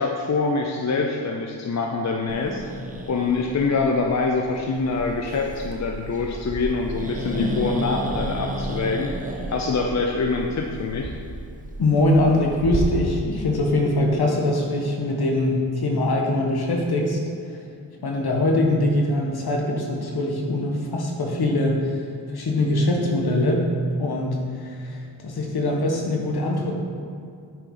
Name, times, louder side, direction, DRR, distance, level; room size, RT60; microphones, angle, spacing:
voice 1, 0.0-2.6 3.1-11.1, left 4 dB, 40° left, 1 dB, 0.6 m, -25 dB
Growling, 2.3-12.8, right 2 dB, 20° right, 0.7 m, -33 dB
voice 2, 11.8-17.2 17.5-17.6 18.0-22.0 22.3-23.6 24.0-26.8, left 1 dB, 60° left, 0 dB, 1.3 m, -22 dB
9.0 x 4.4 x 4.0 m, 2.3 s
cardioid pair, 75°, 43 cm